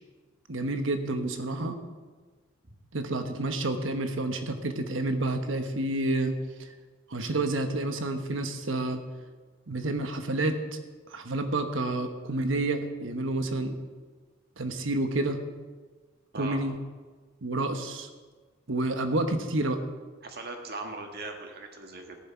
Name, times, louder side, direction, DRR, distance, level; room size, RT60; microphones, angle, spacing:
voice 1, 0.5-1.8 2.9-6.3 6.6-6.7 7.1-9.0 9.7-10.6 11.1-13.7 14.6-15.4 16.3-16.7 17.4-18.1 18.7-19.8, right 2 dB, 70° right, 7 dB, 1.2 m, -29 dB
voice 2, 20.2-22.2, right 3 dB, 55° right, 4 dB, 1.6 m, -39 dB
14.5 x 11.0 x 4.5 m, 1.4 s
head